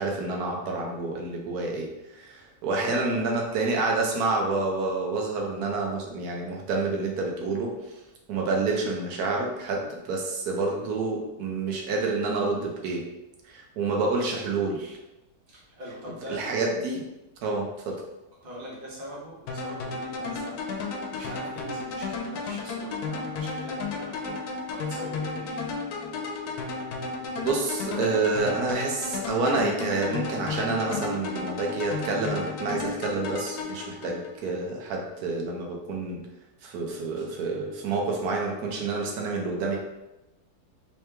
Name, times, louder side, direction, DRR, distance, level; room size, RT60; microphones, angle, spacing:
voice 1, 0.0-8.0 8.3-13.0 13.4-15.0 16.3-17.1 17.4-18.0 27.4-36.2 36.6-39.8, right 3 dB, 85° right, 0 dB, 1.2 m, -28 dB
voice 2, 2.8-3.2 15.5-16.4 18.4-25.6 37.2-37.3, equal, 40° right, -4 dB, 1.1 m, -42 dB
sound 1, 19.5-34.5, left 3 dB, 90° left, 1.1 m, -33 dB
3.3 x 3.1 x 3.3 m, 0.96 s
omnidirectional pair, 1.6 m